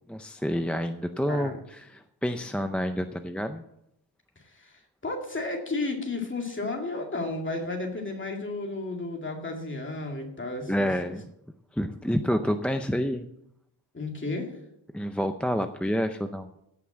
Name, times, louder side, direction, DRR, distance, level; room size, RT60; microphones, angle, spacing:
voice 1, 0.1-3.6 10.7-11.2 11.7-13.2 14.9-16.5, equal, 5° left, 7 dB, 0.4 m, -28 dB
voice 2, 1.3-1.6 4.4-11.1 13.9-14.6, left 2 dB, 25° left, 2 dB, 2.3 m, -33 dB
16.0 x 5.9 x 7.3 m, 0.79 s
wide cardioid pair, 170°, 45 cm